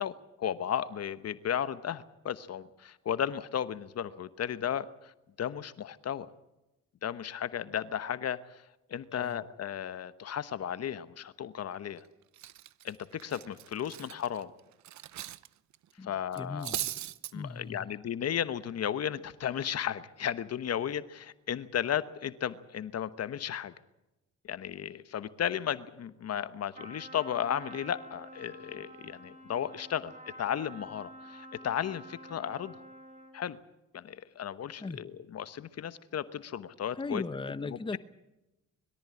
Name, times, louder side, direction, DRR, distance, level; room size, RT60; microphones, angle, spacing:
voice 1, 0.0-5.1 5.4-6.3 7.0-8.4 8.9-12.0 12.8-13.0 13.2-14.5 16.0-16.7 17.3-23.7 24.5-32.8 33.3-33.6 33.9-37.2 37.7-37.8, left 9 dB, 55° left, 1.1 m, -34 dB
Cutlery silverware, 11.7-12.0 12.3-15.5 15.7-15.9 16.3-17.3, right 13 dB, 70° right, 0.8 m, -39 dB
voice 2, 16.0-16.8 17.3-17.9 34.8-35.0 36.9-38.0, left 3 dB, 15° left, 1.0 m, -38 dB
Trumpet, 26.7-33.4, right 1 dB, 25° right, 4.1 m, -49 dB
22.0 x 13.5 x 9.7 m
cardioid pair, 90°, 30 cm